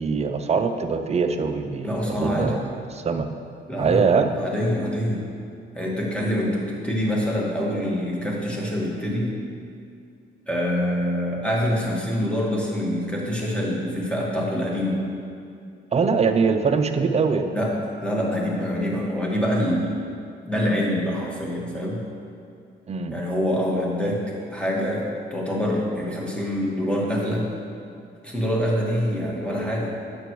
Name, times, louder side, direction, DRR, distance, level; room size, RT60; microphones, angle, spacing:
voice 1, 0.0-3.3 3.8-4.3 15.9-17.5 22.9-23.1, right 5 dB, 35° right, 7 dB, 0.5 m, -22 dB
voice 2, 1.8-2.6 3.7-4.0 4.4-5.2 5.7-9.3 10.5-15.0 17.5-17.7 18.0-19.9 20.5-22.0 23.1-24.2 24.5-27.5 28.2-29.9, equal, 5° left, -3 dB, 1.6 m, -25 dB
8.6 x 6.9 x 3.1 m, 2.3 s
cardioid pair, 90°, 20 cm